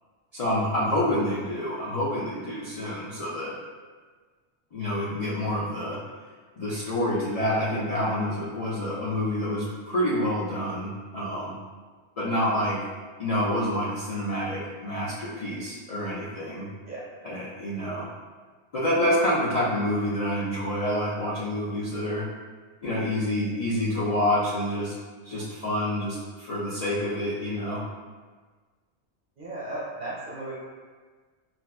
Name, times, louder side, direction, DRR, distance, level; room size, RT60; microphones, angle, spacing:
voice 1, 0.3-3.5 4.7-6.0 6.6-11.6 12.2-12.8 13.2-16.7 17.2-18.1 18.7-22.3 22.8-24.9 25.2-27.8, left 1 dB, 55° left, -7 dB, 0.4 m, -27 dB
voice 2, 29.4-30.6, right 2 dB, 50° right, -6 dB, 1.0 m, -35 dB
4.1 x 2.1 x 2.3 m, 1.4 s
omnidirectional pair, 1.2 m